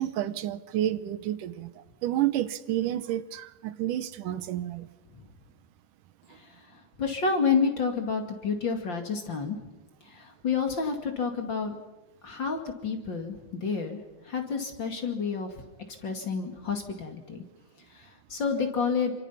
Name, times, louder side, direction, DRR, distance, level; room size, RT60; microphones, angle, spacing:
voice 1, 0.0-4.9, right 12 dB, 85° right, 14 dB, 2.6 m, -30 dB
voice 2, 6.3-9.6 10.1-11.7 12.2-14.0 14.2-15.5 16.0-17.4 17.9-19.1, left 5 dB, 40° left, 4 dB, 2.7 m, -29 dB
28.5 x 25.5 x 5.8 m, 1.1 s
omnidirectional pair, 3.6 m